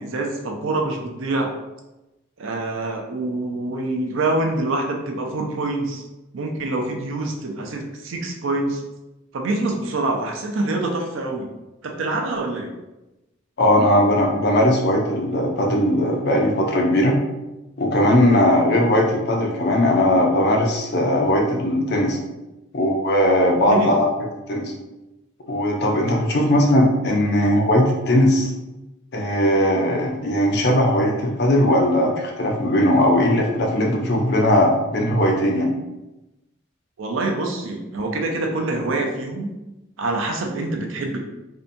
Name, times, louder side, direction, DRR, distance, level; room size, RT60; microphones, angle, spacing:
voice 1, 0.0-1.5 2.4-6.0 6.3-8.8 9.3-11.5 11.8-12.7 23.7-23.9 26.3-26.6 37.0-39.5 40.0-41.2, right 2 dB, 70° right, 2 dB, 0.4 m, -25 dB
voice 2, 13.6-17.1 17.8-22.2 22.7-24.1 24.5-24.7 25.5-28.5 29.1-35.7, left 1 dB, 55° left, 0 dB, 0.5 m, -19 dB
2.7 x 2.2 x 2.5 m, 0.99 s
head